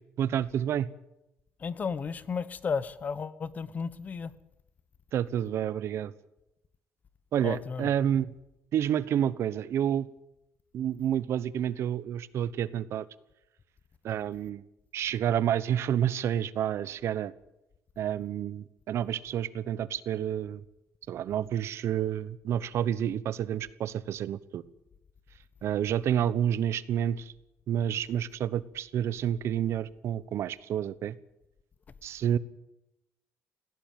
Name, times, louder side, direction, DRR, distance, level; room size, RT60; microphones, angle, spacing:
voice 1, 0.2-0.9 5.1-6.1 7.3-8.3 8.7-10.1 10.7-13.1 14.0-14.6 14.9-17.3 18.0-20.6 21.1-24.6 25.6-27.3 27.7-31.1 32.0-32.4, right 10 dB, 60° right, 1.0 m, -29 dB
voice 2, 1.6-4.3 7.4-7.9, left 5 dB, 30° left, 0.9 m, -33 dB
19.0 x 17.0 x 9.3 m
cardioid pair, 145°, 5 cm